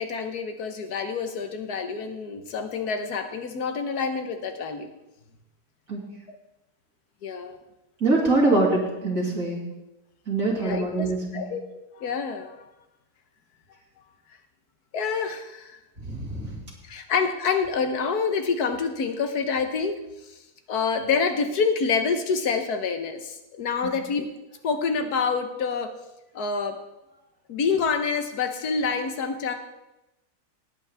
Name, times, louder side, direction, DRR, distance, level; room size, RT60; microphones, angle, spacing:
voice 1, 0.0-4.9 7.2-7.6 9.4-9.5 10.5-11.1 11.3-11.6 11.9-12.6 14.9-15.8 16.9-20.0 20.7-24.3 24.6-25.9 26.3-26.8 27.5-29.5, left 5 dB, 75° left, 7 dB, 1.6 m, -27 dB
voice 2, 8.0-9.6 10.3-11.4 16.0-16.5, right 2 dB, 55° right, -4 dB, 3.0 m, -23 dB
18.0 x 8.3 x 3.5 m, 0.95 s
omnidirectional pair, 1.7 m